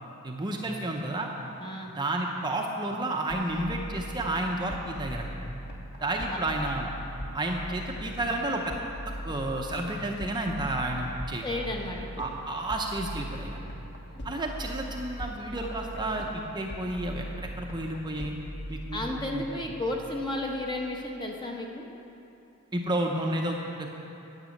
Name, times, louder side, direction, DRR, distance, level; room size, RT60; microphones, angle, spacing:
voice 1, 0.2-1.3 2.0-5.3 6.0-6.9 7.3-8.7 9.2-11.4 12.2-13.6 14.2-18.3 18.7-19.4 22.7-23.9, right 1 dB, 20° right, 0 dB, 0.7 m, -31 dB
voice 2, 1.6-1.9 6.0-6.4 11.4-12.3 14.0-14.4 18.9-21.9, left 1 dB, 20° left, 0 dB, 1.1 m, -33 dB
sound 1, 3.3-20.9, equal, 50° left, 1.4 m, -40 dB
10.0 x 8.9 x 6.5 m, 2.8 s
head